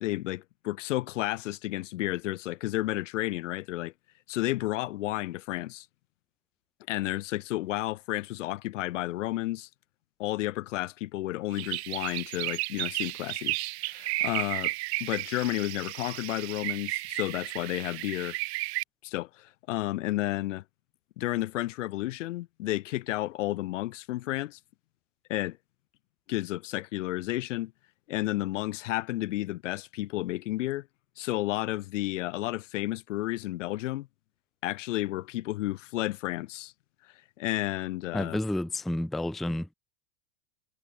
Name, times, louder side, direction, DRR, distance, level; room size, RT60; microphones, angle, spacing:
voice 1, 0.0-3.9 4.3-5.9 6.9-9.7 10.2-13.6 13.8-14.7 15.0-18.4 19.0-20.6 21.2-24.6 25.3-25.6 26.3-27.7 28.1-30.9 31.2-34.1 34.6-36.7 37.4-38.4, left 16 dB, 75° left, 1.1 m, -32 dB
sound 1, 11.5-18.8, right 22 dB, 60° right, 0.6 m, -33 dB
voice 2, 38.1-39.7, left 1 dB, ahead, 0.4 m, -30 dB
supercardioid pair, 130°, 37 cm